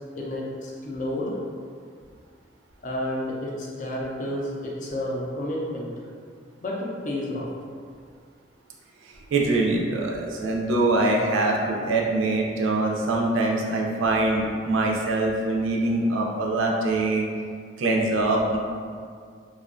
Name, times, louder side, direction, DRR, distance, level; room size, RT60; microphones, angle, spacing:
voice 1, 0.1-1.3 2.8-5.9 6.6-7.5, left 1 dB, 40° left, -3 dB, 0.4 m, -30 dB
voice 2, 9.0-17.3 17.8-18.6, right 2 dB, 80° right, -1 dB, 0.4 m, -23 dB
2.4 x 2.1 x 2.4 m, 2.1 s
head